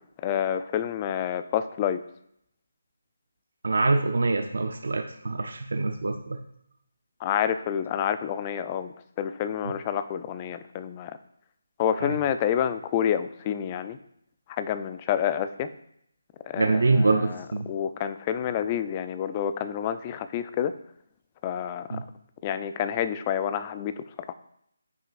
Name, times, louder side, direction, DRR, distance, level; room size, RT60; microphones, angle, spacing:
voice 1, 0.2-2.0 7.2-11.2 11.8-14.0 14.5-15.7 16.4-20.7 21.4-22.0 22.4-24.3, left 9 dB, 25° left, 11 dB, 0.3 m, -28 dB
voice 2, 3.6-6.4 12.0-12.1 16.6-17.7 21.9-22.0, right 3 dB, 70° right, 6 dB, 0.6 m, -25 dB
9.3 x 6.0 x 2.5 m, 0.75 s
figure-of-eight pair, 160°, 0 cm